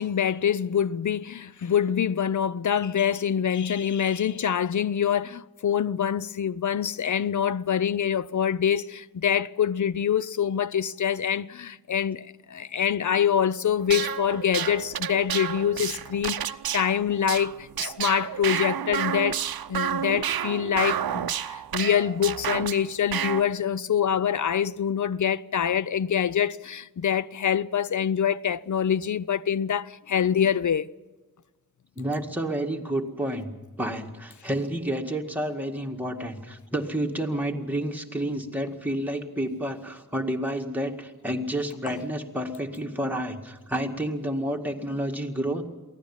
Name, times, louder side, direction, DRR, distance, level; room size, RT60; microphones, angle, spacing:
voice 1, 0.0-19.4 19.7-30.9 41.9-42.0, left 8 dB, 55° left, 0.5 m, -25 dB
sound 1, 13.8-22.8 23.1-23.4, right 9 dB, 75° right, 0.7 m, -30 dB
voice 2, 32.0-33.5 33.8-45.6, right 1 dB, 5° right, 2.0 m, -30 dB
23.5 x 16.0 x 7.2 m
wide cardioid pair, 110°, 36 cm